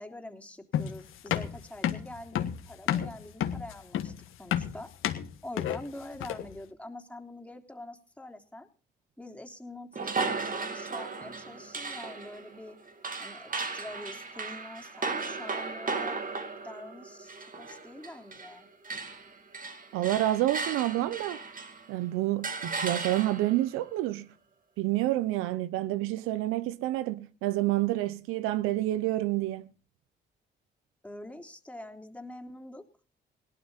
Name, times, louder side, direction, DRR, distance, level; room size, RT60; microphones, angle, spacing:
voice 1, 0.0-4.9 5.4-8.7 9.2-12.8 13.2-16.2 16.6-18.7 31.0-32.8, left 1 dB, 5° left, 3.4 m, -45 dB
sound 1, 0.7-6.6, left 10 dB, 75° left, 1.8 m, -31 dB
sound 2, 9.9-18.6 18.8-21.9 22.4-23.6, right 4 dB, 40° right, 2.5 m, -36 dB
voice 2, 19.9-21.4 21.9-24.3 24.8-29.7, right 15 dB, 85° right, 0.7 m, -28 dB
17.5 x 12.5 x 4.1 m
supercardioid pair, 55°, 21 cm